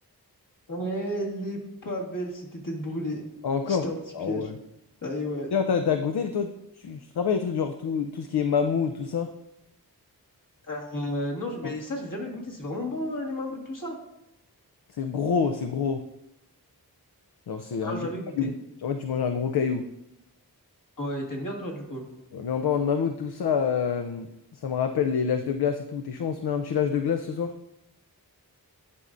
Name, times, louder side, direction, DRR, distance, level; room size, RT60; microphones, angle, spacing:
voice 1, 0.7-3.2 3.7-4.0 4.2-4.5 5.0-5.5 10.7-14.0 17.8-18.5 21.0-22.0, equal, 55° left, -1 dB, 1.8 m, -32 dB
voice 2, 3.4-3.8 4.1-4.6 5.5-9.3 15.0-16.0 17.5-18.1 18.4-18.5 18.8-19.8 22.3-24.3 24.6-27.5, left 6 dB, 75° left, 7 dB, 0.5 m, -27 dB
11.0 x 5.5 x 2.5 m, 0.86 s
wide cardioid pair, 45°, 39 cm